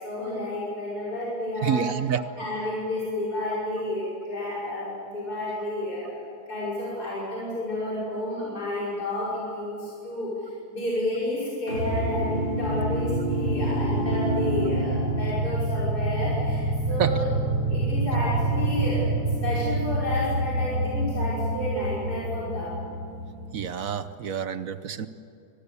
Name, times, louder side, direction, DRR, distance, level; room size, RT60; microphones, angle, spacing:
voice 1, 0.0-1.9 2.4-17.2 17.7-19.1 19.4-22.8, left 1 dB, 70° left, -7 dB, 6.2 m, -31 dB
voice 2, 1.6-2.2 17.0-17.2 23.5-25.1, right 8 dB, 60° right, 12 dB, 1.2 m, -27 dB
sound 1, 11.7-23.9, right 2 dB, 80° right, 4.4 m, -27 dB
25.0 x 19.5 x 8.3 m, 2.5 s
omnidirectional pair, 1.7 m